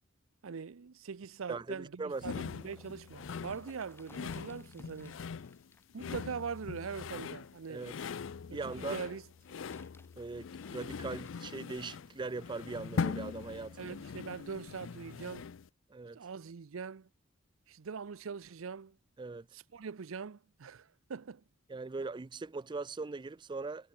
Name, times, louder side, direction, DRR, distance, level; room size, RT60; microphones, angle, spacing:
voice 1, 0.4-5.2 5.9-7.9 8.5-9.2 13.8-15.5 16.1-17.1 17.7-19.0 19.5-21.4, right 5 dB, 85° right, 0.6 m, -42 dB
voice 2, 1.5-2.3 7.7-8.0 8.5-9.0 10.2-14.0 15.9-16.2 19.2-19.5 21.7-23.9, right 3 dB, 20° right, 0.4 m, -40 dB
sound 1, 2.2-15.7, left 5 dB, 65° left, 0.4 m, -41 dB
sound 2, 2.5-8.2 9.1-11.6 12.3-12.4, left 2 dB, 10° left, 4.3 m, -64 dB
head